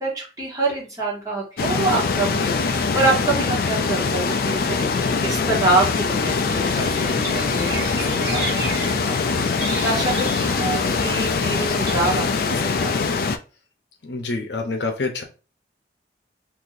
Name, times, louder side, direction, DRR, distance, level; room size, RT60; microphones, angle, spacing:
voice 1, 0.0-8.6 8.9-13.0, right 2 dB, 20° right, -4 dB, 1.2 m, -26 dB
sound 1, 1.6-13.4, left 4 dB, 55° left, 0.3 m, -23 dB
sound 2, 6.5-12.2, right 2 dB, 60° right, 1.1 m, -33 dB
voice 2, 14.0-15.2, left 3 dB, 70° left, 4 dB, 0.7 m, -27 dB
2.7 x 2.6 x 3.9 m, 0.33 s
head